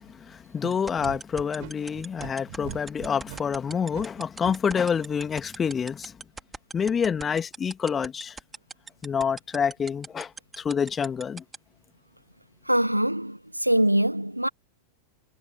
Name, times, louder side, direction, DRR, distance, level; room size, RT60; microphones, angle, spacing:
voice 1, 0.0-6.1 6.7-8.4 9.0-10.3 10.6-11.4, left 7 dB, 20° left, 2.3 m, -27 dB
sound 1, 0.7-11.6, right 4 dB, 10° right, 3.3 m, -38 dB
sound 2, 1.0-4.5, right 29 dB, 45° right, 6.6 m, -41 dB
voice 2, 12.7-14.5, right 1 dB, 90° right, 1.0 m, -23 dB
figure-of-eight pair, 90°, 0 cm